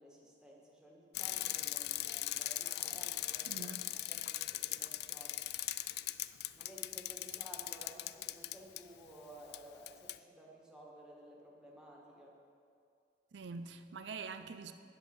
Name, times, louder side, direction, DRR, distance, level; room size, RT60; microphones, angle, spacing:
voice 1, 0.0-5.4 6.5-12.4, right 1 dB, 5° right, 1.7 m, -55 dB
Bicycle, 1.1-8.8 9.5-9.6 9.9-10.2, left 15 dB, 65° left, 0.3 m, -39 dB
voice 2, 3.5-3.8 13.3-14.7, right 4 dB, 90° right, 0.5 m, -45 dB
9.5 x 8.1 x 6.1 m
head